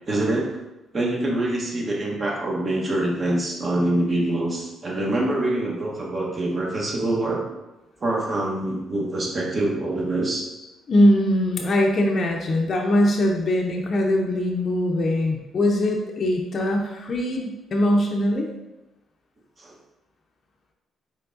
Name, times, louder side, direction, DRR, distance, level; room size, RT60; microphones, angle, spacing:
voice 1, 0.1-0.4 0.9-7.4 8.0-10.4 19.6-19.7, right 1 dB, 35° right, -2 dB, 1.1 m, -25 dB
voice 2, 10.9-18.5, left 1 dB, 45° left, 0 dB, 0.5 m, -21 dB
4.4 x 3.5 x 2.6 m, 1.0 s
cardioid pair, 90°, 0 cm